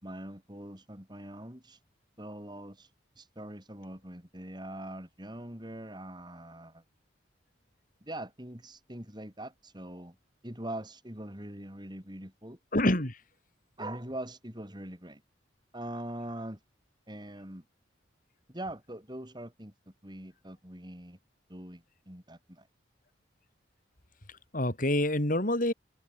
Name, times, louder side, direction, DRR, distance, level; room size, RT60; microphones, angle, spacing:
voice 1, 0.0-1.8 2.2-6.8 8.0-10.2 10.4-12.6 13.8-15.2 15.7-16.6 17.1-17.6 18.5-19.7 20.0-21.2 21.5-22.7, right 1 dB, 25° right, 5.8 m, -42 dB
voice 2, 12.7-13.2 24.5-25.7, left 1 dB, 45° left, 4.2 m, -26 dB
head